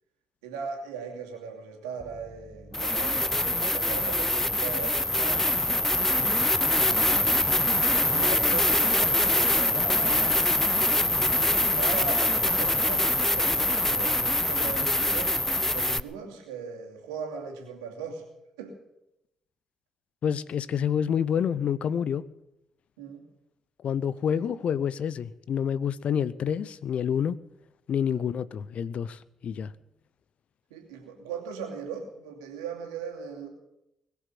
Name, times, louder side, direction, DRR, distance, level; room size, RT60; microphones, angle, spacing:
voice 1, 0.4-7.1 7.9-10.6 11.6-15.4 15.6-18.2 18.6-18.8 23.0-23.3 24.3-24.4 28.1-28.2 30.7-33.5, right 6 dB, 80° right, 2 dB, 2.7 m, -38 dB
sound 1, 2.0-2.1 2.7-16.0, left 1 dB, 15° left, 0.7 m, -24 dB
voice 2, 20.2-22.2 23.8-27.4 27.9-29.7, left 8 dB, 55° left, 18 dB, 0.7 m, -28 dB
21.0 x 7.2 x 9.4 m, 0.86 s
hypercardioid pair, 40°, 2 cm